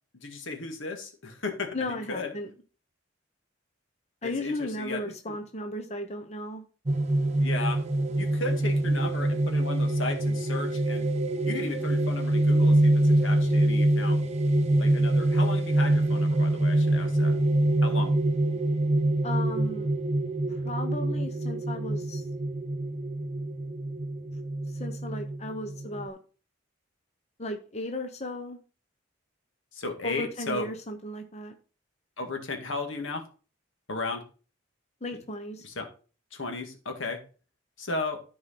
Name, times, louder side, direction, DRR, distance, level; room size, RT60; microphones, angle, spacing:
voice 1, 0.2-2.3 4.2-5.4 7.3-7.8 8.2-11.1 11.4-14.2 14.8-17.4 17.8-18.1 29.7-30.7 32.2-33.3 33.9-34.2 35.6-35.9 36.3-37.2 37.8-38.2, left 3 dB, 85° left, 4 dB, 2.0 m, -35 dB
voice 2, 1.7-2.5 4.2-6.6 19.2-19.9 20.6-22.2 24.7-26.2 27.4-28.6 30.0-31.5 35.0-35.6, left 1 dB, 35° left, 5 dB, 0.9 m, -35 dB
sound 1, 6.9-26.0, right 1 dB, 35° right, 0.9 m, -25 dB
13.0 x 4.8 x 4.3 m, 0.37 s
head